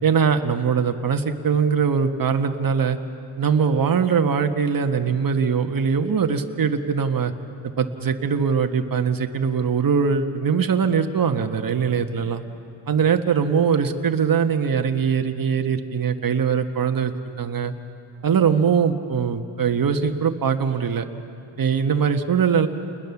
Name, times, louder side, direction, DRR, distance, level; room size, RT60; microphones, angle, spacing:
voice 1, 0.0-3.0 3.4-7.3 7.8-12.4 12.9-17.7 18.2-21.1 21.6-22.7, right 6 dB, 45° right, 6 dB, 1.5 m, -21 dB
29.5 x 20.5 x 7.2 m, 2.9 s
cardioid pair, 110°, 46 cm